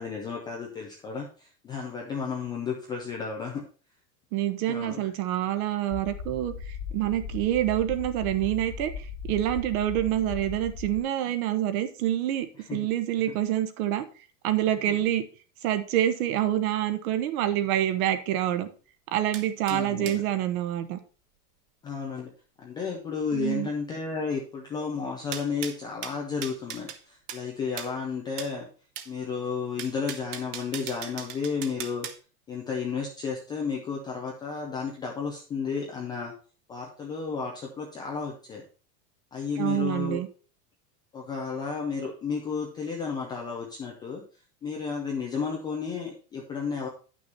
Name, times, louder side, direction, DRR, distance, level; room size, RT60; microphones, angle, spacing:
voice 1, 0.0-3.6 4.7-5.1 12.6-12.8 14.9-15.0 19.7-20.2 21.8-22.3 22.6-28.7 29.1-32.1 32.5-36.3 36.7-38.6 39.3-40.2 41.1-44.2 44.6-46.9, left 5 dB, 10° left, -1 dB, 0.3 m, -32 dB
voice 2, 4.3-6.5 6.9-8.9 9.3-14.0 14.4-15.2 15.6-18.7 19.1-21.0 23.3-23.7 39.6-40.3, right 12 dB, 60° right, 9 dB, 1.2 m, -27 dB
sound 1, 5.9-11.0, left 5 dB, 45° left, 1.2 m, -38 dB
sound 2, 19.3-20.2 25.3-27.0 27.3-27.4 27.8-27.9 28.4-28.5 29.0-29.1 29.8-32.2, right 9 dB, 35° right, 1.0 m, -38 dB
9.3 x 6.1 x 4.2 m, 0.37 s
supercardioid pair, 145°, 49 cm